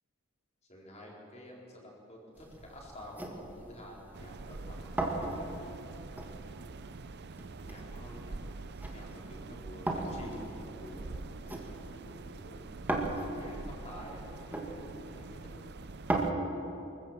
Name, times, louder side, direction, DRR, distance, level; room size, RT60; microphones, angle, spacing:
voice 1, 0.7-4.9 5.4-5.8 7.6-8.5 8.9-12.7 13.3-14.7 15.1-15.6, left 1 dB, 30° left, -2 dB, 4.4 m, -50 dB
sound 1, 2.4-16.2, right 1 dB, 10° right, 2.0 m, -40 dB
sound 2, 4.1-16.3, right 3 dB, 55° right, 0.6 m, -45 dB
24.5 x 15.0 x 7.6 m, 2.9 s
head